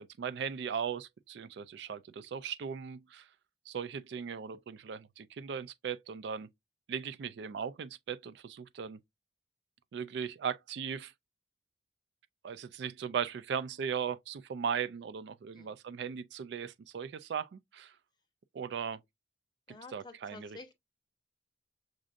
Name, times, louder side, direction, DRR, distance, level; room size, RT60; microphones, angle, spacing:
voice 1, 0.0-3.3 3.7-6.5 6.9-9.0 9.9-11.1 12.4-17.9 18.5-19.0 19.9-20.6, right 7 dB, 65° right, 0.3 m, -38 dB
voice 2, 19.7-20.7, left 3 dB, 25° left, 0.8 m, -50 dB
6.1 x 2.5 x 2.5 m
head